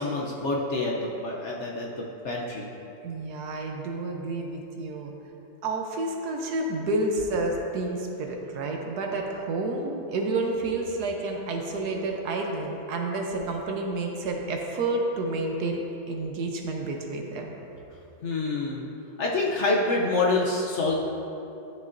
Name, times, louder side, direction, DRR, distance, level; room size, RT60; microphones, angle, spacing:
voice 1, 0.0-2.7 18.2-18.8 19.2-21.0, left 3 dB, 70° left, -2 dB, 0.7 m, -27 dB
voice 2, 3.0-5.1 5.6-15.8 16.1-17.5, right 2 dB, 65° right, 1 dB, 1.2 m, -30 dB
11.5 x 6.4 x 2.6 m, 2.9 s
omnidirectional pair, 2.0 m